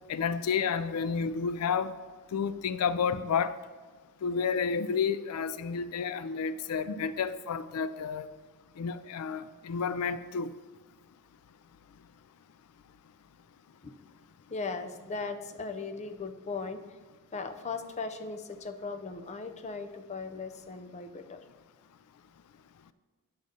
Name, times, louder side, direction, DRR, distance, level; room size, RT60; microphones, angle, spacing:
voice 1, 0.1-1.9 2.3-3.5 4.2-8.3 8.8-10.5, left 6 dB, 85° left, 14 dB, 0.4 m, -30 dB
voice 2, 14.5-16.8 17.3-21.4, left 4 dB, 30° left, 7 dB, 0.5 m, -38 dB
9.6 x 3.9 x 6.5 m, 1.4 s
head